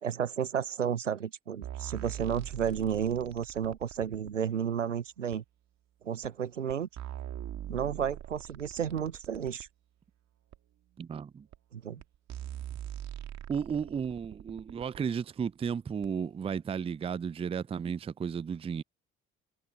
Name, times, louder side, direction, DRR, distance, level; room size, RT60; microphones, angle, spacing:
voice 1, 0.0-5.4 6.0-6.9 7.7-9.7 11.7-12.0, right 8 dB, 85° right, 0.9 m, -32 dB
sound 1, 1.6-4.3 5.3-5.4 6.2-6.3 6.7-9.7 10.5-10.6 11.5-11.6 12.0-12.1 12.3-15.0 16.0-16.1, right 11 dB, 45° right, 2.3 m, -42 dB
voice 2, 11.0-11.5 13.5-18.8, right 7 dB, 15° right, 0.5 m, -34 dB
figure-of-eight pair, 50°, 36 cm